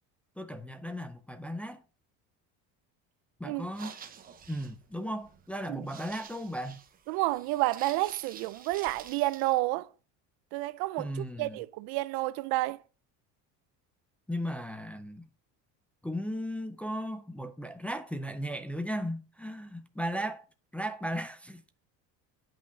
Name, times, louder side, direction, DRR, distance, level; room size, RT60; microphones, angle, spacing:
voice 1, 0.4-1.8 3.4-4.0 4.5-6.8 11.0-11.6 14.3-15.3 16.0-20.4 20.7-21.6, equal, 5° left, 0.4 m, -36 dB
sound 1, 3.6-9.6, right 7 dB, 25° right, 0.9 m, -50 dB
voice 2, 7.1-9.9 10.5-12.8, right 19 dB, 80° right, 0.7 m, -30 dB
10.5 x 5.9 x 5.4 m
cardioid pair, 170°, 37 cm